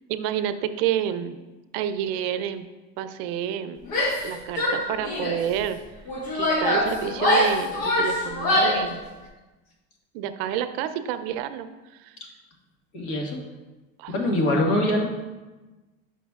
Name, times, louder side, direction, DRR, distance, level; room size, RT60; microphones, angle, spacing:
voice 1, 0.1-1.4 1.7-2.7 3.0-3.8 4.2-5.8 6.3-9.0 10.1-11.7 12.0-12.2 14.0-14.1 14.9-15.0, right 10 dB, 85° right, 10 dB, 0.5 m, -29 dB
Female speech woman speaking / Yell, 3.8-4.3 4.6-5.4 6.1-8.9, left 1 dB, 85° left, 1.5 m, -23 dB
voice 2, 12.9-13.4 14.1-15.0, left 1 dB, 55° left, 0 dB, 1.5 m, -23 dB
9.2 x 5.9 x 2.4 m, 1.2 s
cardioid pair, 165°, 30 cm